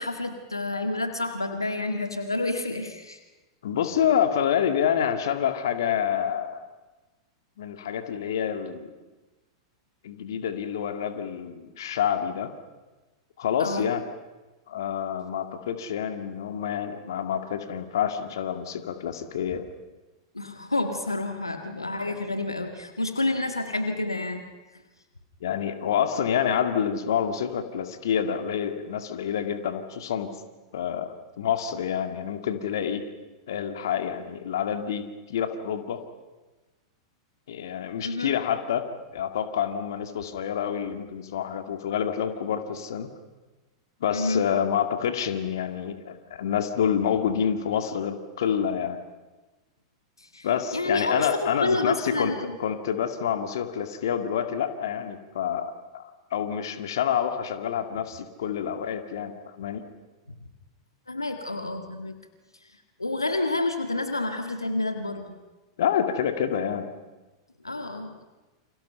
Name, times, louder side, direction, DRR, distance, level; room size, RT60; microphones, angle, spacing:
voice 1, 0.0-3.2 13.6-13.9 20.3-24.4 38.0-38.4 44.1-44.4 50.2-50.5 50.7-52.6 61.1-62.1 63.0-65.3 67.6-68.1, left 2 dB, 90° left, 6 dB, 1.9 m, -29 dB
voice 2, 3.6-6.6 7.6-8.9 10.0-12.5 13.4-14.0 14.7-19.6 22.1-22.3 25.4-30.3 30.7-31.1 31.4-33.0 33.5-36.0 37.5-43.1 44.0-49.0 50.4-52.3 52.6-59.8 65.8-66.9, left 8 dB, 65° left, 7 dB, 2.3 m, -28 dB
29.5 x 27.5 x 5.7 m, 1.2 s
figure-of-eight pair, 95°, 2 cm